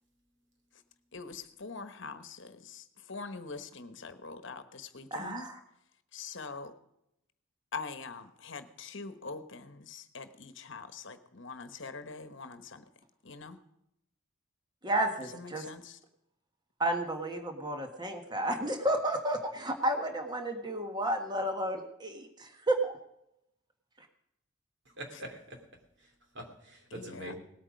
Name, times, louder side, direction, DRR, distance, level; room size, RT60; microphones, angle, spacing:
voice 1, 1.1-5.5 6.1-6.7 7.7-12.8 13.2-13.6 15.2-16.0 26.9-27.3, left 4 dB, 60° left, 10 dB, 1.1 m, -44 dB
voice 2, 5.1-5.6 14.8-15.6 16.8-22.9, right 1 dB, 20° right, 4 dB, 1.5 m, -32 dB
voice 3, 24.8-25.6 26.0-27.3, right 1 dB, 55° right, 3 dB, 3.0 m, -44 dB
18.5 x 8.8 x 5.2 m, 0.82 s
head